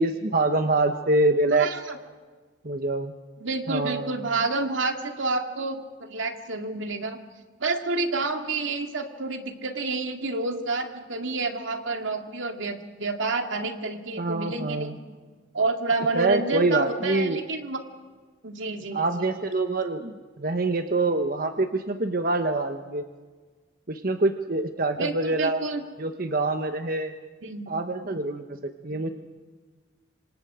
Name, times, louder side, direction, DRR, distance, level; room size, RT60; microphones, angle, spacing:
voice 1, 0.0-1.7 2.6-3.1 3.7-4.1 14.2-15.0 16.1-17.4 18.9-23.0 23.9-25.6 26.0-27.1 27.7-29.1, right 2 dB, 50° right, 6 dB, 1.1 m, -25 dB
voice 2, 1.5-2.0 3.4-7.2 7.6-14.9 15.5-17.8 18.4-19.2 25.0-25.8 27.4-27.7 28.9-29.0, right 3 dB, 80° right, 4 dB, 2.3 m, -29 dB
27.5 x 25.0 x 5.0 m, 1.4 s
head